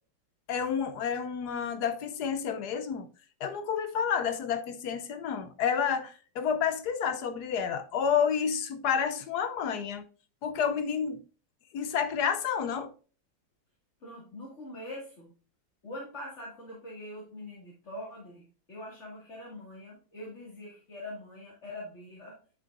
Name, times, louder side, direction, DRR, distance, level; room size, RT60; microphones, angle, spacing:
voice 1, 0.5-3.1 3.4-10.0 10.4-11.2 11.7-12.9, left 7 dB, 65° left, 1.1 m, -30 dB
voice 2, 14.0-15.3 15.8-22.4, left 1 dB, 35° left, 2.4 m, -43 dB
9.9 x 5.8 x 2.5 m
omnidirectional pair, 2.1 m